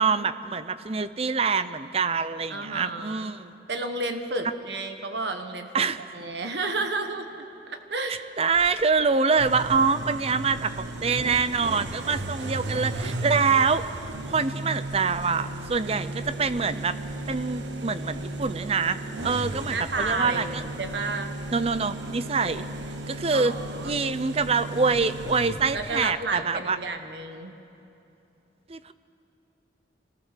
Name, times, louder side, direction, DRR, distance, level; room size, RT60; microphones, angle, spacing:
voice 1, 0.0-3.5 5.7-6.0 8.4-13.8 14.3-17.0 17.3-20.6 21.5-22.7 23.1-23.5 23.8-26.8 28.7-28.9, right 5 dB, 35° right, 13 dB, 0.6 m, -25 dB
voice 2, 2.5-3.3 3.7-5.8 6.1-8.2 15.8-16.1 19.7-21.3 22.4-22.7 23.3-24.0 25.7-27.5, right 3 dB, 70° right, 6 dB, 1.3 m, -32 dB
sound 1, 8.5-25.9, equal, 50° left, 2.6 m, -51 dB
sound 2, 9.4-26.2, right 2 dB, 90° right, 1.2 m, -35 dB
26.0 x 18.0 x 6.7 m, 2.8 s
head